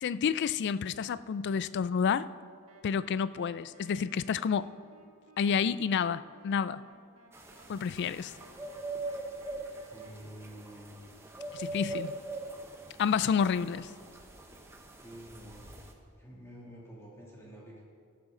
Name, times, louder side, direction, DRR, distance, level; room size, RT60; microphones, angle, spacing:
voice 1, 0.0-2.3 2.8-4.7 5.4-6.8 7.7-8.3 11.5-12.2 13.0-13.9, left 6 dB, 50° left, 16 dB, 0.3 m, -29 dB
sound 1, 2.7-10.1, right 3 dB, 70° right, 1.6 m, -59 dB
sound 2, 7.3-15.9, right 2 dB, 10° right, 0.9 m, -42 dB
voice 2, 9.9-11.0 15.0-15.7 16.2-17.8, equal, 10° left, -5 dB, 2.5 m, -49 dB
13.5 x 12.0 x 3.8 m, 2.2 s
head